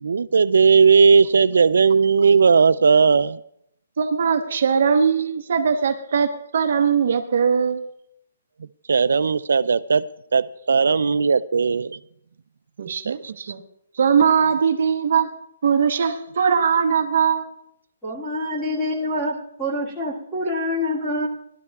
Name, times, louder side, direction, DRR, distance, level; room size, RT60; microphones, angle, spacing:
voice 1, 0.0-3.4 8.9-10.0 10.3-12.0 12.9-13.3, right 5 dB, 90° right, 13 dB, 0.4 m, -17 dB
voice 2, 4.0-7.8 12.8-13.6 14.0-15.3 15.6-17.5, right 6 dB, 50° right, 5 dB, 1.0 m, -20 dB
voice 3, 18.0-21.3, left 1 dB, ahead, -5 dB, 1.6 m, -26 dB
19.5 x 12.0 x 2.3 m, 0.75 s
hypercardioid pair, 180°, 0 cm